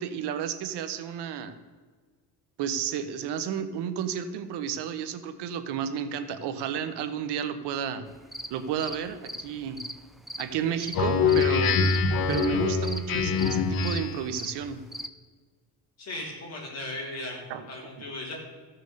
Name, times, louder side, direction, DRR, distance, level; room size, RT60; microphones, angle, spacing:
voice 1, 0.0-1.6 2.6-8.1 8.5-9.8 10.4-11.8 12.3-14.8 17.5-17.6, right 8 dB, 85° right, 10 dB, 1.1 m, -32 dB
sound 1, 8.1-15.1, equal, ahead, 0.4 m, -40 dB
Speech synthesizer, 10.9-14.3, left 5 dB, 60° left, 1.2 m, -24 dB
voice 2, 16.0-18.3, left 2 dB, 40° left, -2 dB, 3.8 m, -37 dB
14.5 x 6.2 x 6.5 m, 1.5 s
cardioid pair, 155°, 40 cm